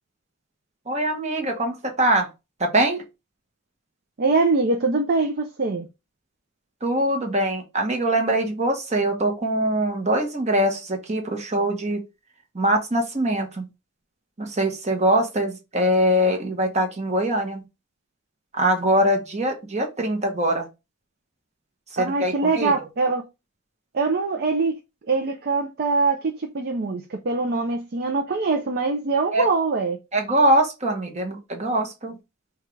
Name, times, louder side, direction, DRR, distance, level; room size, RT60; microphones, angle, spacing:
voice 1, 0.9-2.3 2.6-3.0 6.8-12.0 12.5-13.7 14.4-17.6 18.5-20.7 21.9-22.7 29.3-29.5 30.1-32.2, right 1 dB, 30° right, 1.0 m, -23 dB
voice 2, 4.2-5.9 22.0-23.2 23.9-24.8 25.1-30.0, right 3 dB, 45° right, 0.5 m, -23 dB
5.6 x 2.4 x 3.2 m
head